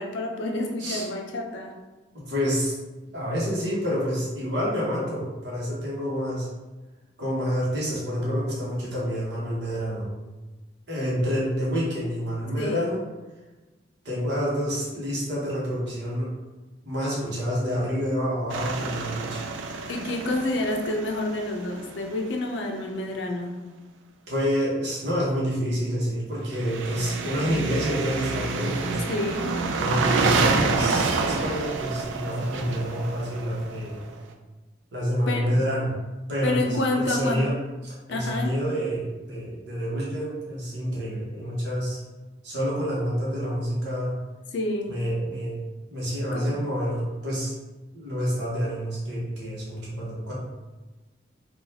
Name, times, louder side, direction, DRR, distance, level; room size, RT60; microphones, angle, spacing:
voice 1, 0.0-1.8 12.6-12.9 19.9-23.6 29.1-29.6 35.3-35.6 36.4-37.5 38.1-38.5 44.5-45.0 46.3-46.4, left 2 dB, 75° left, 2 dB, 0.5 m, -28 dB
voice 2, 2.1-2.8 3.1-6.5 7.2-10.1 10.9-13.0 14.0-16.3 16.8-19.4 24.3-29.0 29.7-34.0 34.9-35.9 36.3-37.5 37.8-42.0 42.4-44.2 44.9-45.6 45.9-47.5 47.9-50.3, equal, 65° right, -6 dB, 1.1 m, -28 dB
sound 1, 18.5-22.4 26.5-34.2, right 4 dB, 80° right, 0.3 m, -28 dB
3.9 x 2.3 x 2.7 m, 1.2 s
head